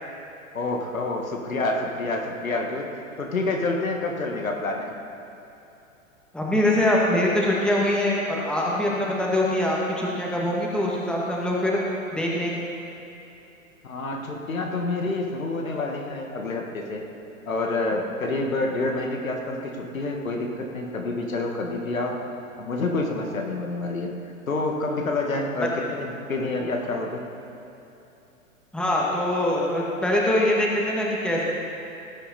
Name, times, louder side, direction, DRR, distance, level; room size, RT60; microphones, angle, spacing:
voice 1, 0.5-2.9 3.2-4.9 13.8-17.0 17.5-22.2 22.6-24.2 24.5-27.2, left 2 dB, 75° left, 1 dB, 1.9 m, -28 dB
voice 2, 6.3-11.8 12.1-12.7 28.7-31.4, left 1 dB, ahead, -4 dB, 1.8 m, -23 dB
18.0 x 8.6 x 4.3 m, 2.9 s
figure-of-eight pair, 105°, 41 cm